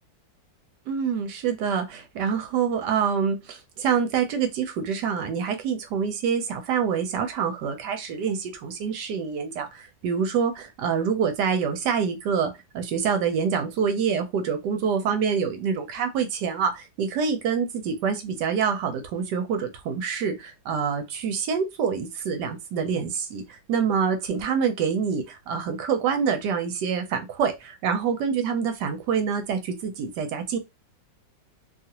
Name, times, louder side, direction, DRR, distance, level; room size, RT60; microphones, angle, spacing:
voice 1, 0.9-30.6, right 6 dB, 75° right, 1.1 m, -26 dB
2.8 x 2.4 x 2.8 m
omnidirectional pair, 2.0 m